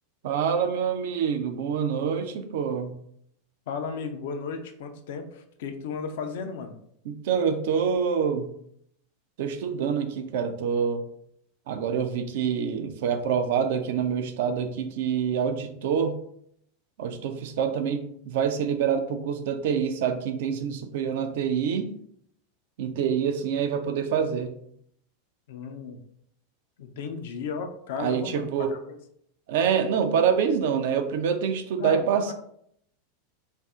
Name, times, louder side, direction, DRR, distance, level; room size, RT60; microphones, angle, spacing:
voice 1, 0.2-2.9 7.1-8.5 9.4-11.0 11.7-16.2 17.0-21.9 22.8-24.5 28.0-28.7 29.5-32.3, right 7 dB, 65° right, 7 dB, 0.4 m, -26 dB
voice 2, 3.7-6.7 25.5-26.0 26.8-29.0 31.8-32.3, left 5 dB, 65° left, 6 dB, 0.5 m, -35 dB
2.5 x 2.0 x 3.5 m, 0.69 s
hypercardioid pair, 90°, 0 cm